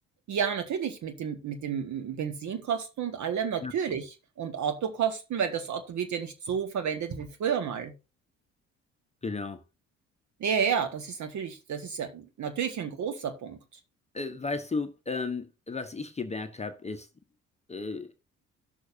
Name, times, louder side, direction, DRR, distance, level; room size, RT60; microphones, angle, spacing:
voice 1, 0.3-4.1 4.4-7.9 10.4-13.6, right 7 dB, 45° right, 1.8 m, -31 dB
voice 2, 9.2-9.6 14.1-17.1 17.7-18.1, left 3 dB, 15° left, 0.9 m, -34 dB
17.0 x 6.3 x 2.7 m
figure-of-eight pair, 50°, 39 cm